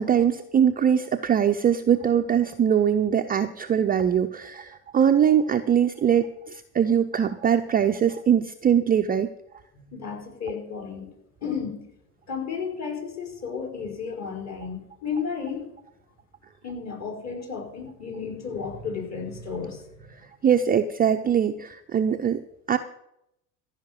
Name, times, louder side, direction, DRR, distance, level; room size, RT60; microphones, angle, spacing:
voice 1, 0.0-9.3 20.4-22.4 22.7-22.8, right 8 dB, 20° right, 7 dB, 0.6 m, -22 dB
voice 2, 9.8-11.1 11.4-11.9 12.3-15.8 16.6-19.8, left 6 dB, 35° left, 1 dB, 5.2 m, -33 dB
15.0 x 5.8 x 8.9 m, 0.79 s
hypercardioid pair, 80°, 47 cm